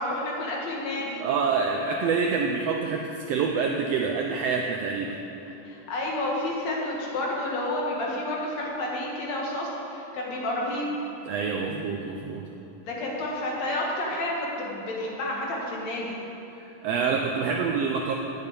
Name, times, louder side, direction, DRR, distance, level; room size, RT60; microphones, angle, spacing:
voice 1, 0.0-1.3 5.6-11.0 12.9-16.2, left 1 dB, 60° left, -3 dB, 2.8 m, -30 dB
voice 2, 1.2-5.2 11.3-12.4 16.5-18.1, right 5 dB, 80° right, 1 dB, 1.5 m, -27 dB
8.7 x 8.2 x 8.9 m, 3.0 s
omnidirectional pair, 3.5 m